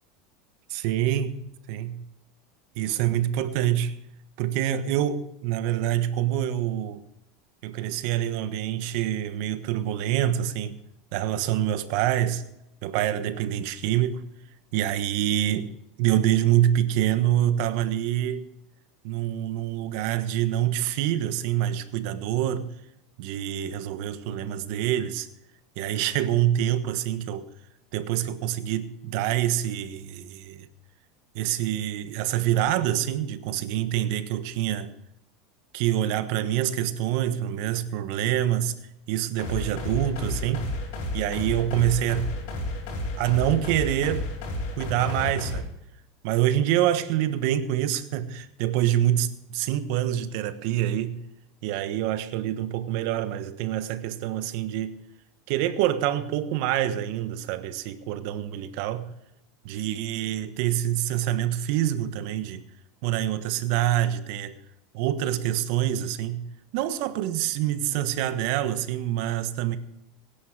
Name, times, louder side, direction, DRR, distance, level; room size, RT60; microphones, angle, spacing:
voice 1, 0.7-2.0 2.8-4.0 4.4-7.0 7.6-10.8 11.1-12.4 12.8-14.2 14.7-15.7 16.0-18.5 19.0-22.7 23.2-25.3 25.8-27.5 27.9-30.7 31.3-34.9 35.7-38.8 39.1-40.7 41.1-42.3 43.2-44.3 44.7-45.7 46.2-51.2 51.6-55.0 55.5-59.1 59.6-62.6 63.0-64.6 64.9-66.5 66.7-69.8, right 12 dB, 65° right, 1.2 m, -26 dB
sound 1, 39.4-45.6, left 1 dB, 75° left, 5.3 m, -32 dB
17.5 x 10.0 x 4.9 m
supercardioid pair, 115°, 0 cm